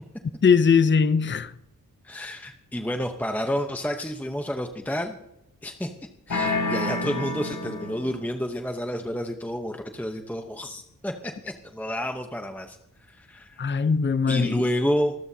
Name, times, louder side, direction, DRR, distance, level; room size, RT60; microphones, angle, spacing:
voice 1, 0.4-1.5 13.6-14.6, left 5 dB, 35° left, 0.6 m, -20 dB
voice 2, 2.0-5.2 5.6-5.9 6.3-13.7 14.3-15.1, equal, 5° left, 0.9 m, -30 dB
sound 1, 6.3-8.2, left 2 dB, 65° left, 5.5 m, -28 dB
25.0 x 13.5 x 2.8 m
wide cardioid pair, 110°, 35 cm